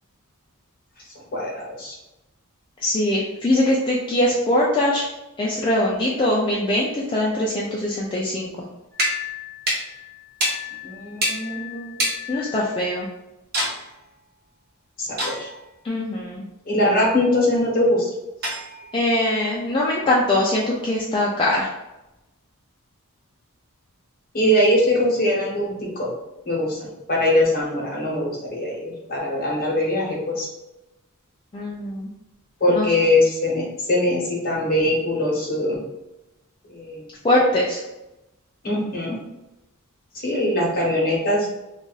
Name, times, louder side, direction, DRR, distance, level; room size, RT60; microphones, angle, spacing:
voice 1, 1.3-2.0 10.8-12.0 15.0-15.5 16.7-18.1 24.3-26.1 26.4-30.5 32.6-35.8 36.7-37.1 38.6-39.2 40.2-41.5, left 1 dB, 40° left, -3 dB, 1.0 m, -22 dB
voice 2, 2.8-5.1 5.4-8.5 12.3-13.1 15.8-16.4 18.9-21.7 31.5-32.1 32.7-32.9 37.2-37.8, left 1 dB, 25° left, -4 dB, 0.4 m, -22 dB
sound 1, 8.9-13.0 13.5-13.9 15.2-15.7 18.4-19.0, equal, 45° right, 0.9 m, -28 dB
2.5 x 2.4 x 3.8 m, 0.96 s
head